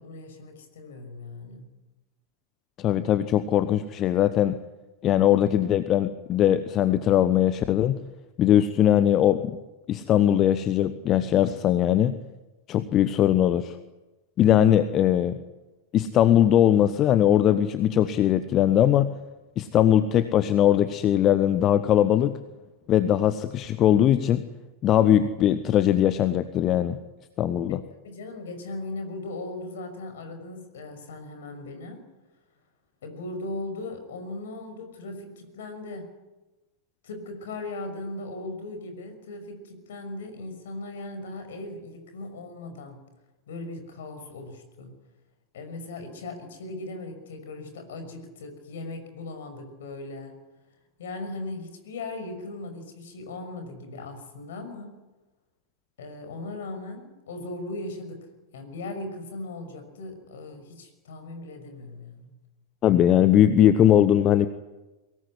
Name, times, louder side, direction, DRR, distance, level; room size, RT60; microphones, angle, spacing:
voice 1, 0.0-1.7 27.7-32.1 33.0-36.1 37.0-43.0 43.5-45.0 45.5-50.4 51.0-55.0 56.0-58.3 58.5-62.3, left 2 dB, 60° left, 7 dB, 6.0 m, -38 dB
voice 2, 2.8-4.6 5.0-8.0 8.4-9.6 9.9-12.2 12.7-13.8 14.4-15.4 15.9-19.1 19.6-22.4 22.9-24.4 24.8-27.0 27.4-27.8 62.8-64.5, left 11 dB, 30° left, 12 dB, 1.1 m, -20 dB
23.5 x 18.5 x 9.8 m, 1.1 s
figure-of-eight pair, 90°, 0 cm